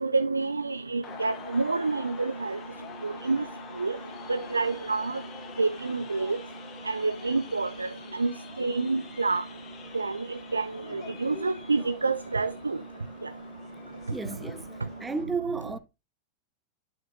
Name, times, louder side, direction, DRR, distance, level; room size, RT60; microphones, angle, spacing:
voice 1, 0.0-2.6 3.0-3.4 3.8-4.0 4.3-5.2 5.6-6.4 6.9-7.9 8.2-8.3 8.6-9.4 9.9-10.2 10.5-10.7 10.9-12.8, right 3 dB, 80° right, 0.3 m, -28 dB
sound 1, 1.0-15.2, left 6 dB, 25° left, 1.9 m, -46 dB
voice 2, 14.1-14.7 15.0-15.8, right 4 dB, 10° right, 0.5 m, -32 dB
11.0 x 5.8 x 2.6 m
figure-of-eight pair, 90°, 0 cm